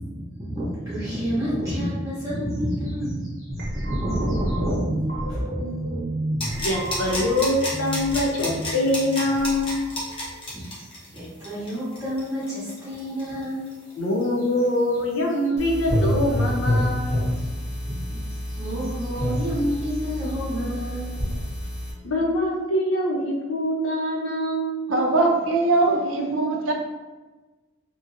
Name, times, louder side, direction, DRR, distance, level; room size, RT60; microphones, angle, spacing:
voice 1, 0.0-5.0 5.3-5.6 6.4-6.5 7.0-7.1 8.4-8.7 9.4-9.6 10.0-13.9 14.4-14.5 17.3-17.5 17.9-21.2, equal, 15° right, -11 dB, 0.9 m, -30 dB
sound 1, 3.5-10.4, right 1 dB, 50° right, 0.7 m, -31 dB
sound 2, 6.4-13.9 14.2-14.3, left 1 dB, 25° left, 0.6 m, -31 dB
voice 2, 6.5-9.9 14.0-17.3 22.0-25.1, left 1 dB, 85° left, -1 dB, 0.6 m, -24 dB
sound 3, 15.6-21.9, left 1 dB, 50° left, 1.0 m, -27 dB
voice 3, 24.9-26.7, right 2 dB, 80° right, 1 dB, 0.4 m, -21 dB
2.9 x 2.6 x 2.6 m, 1.2 s
head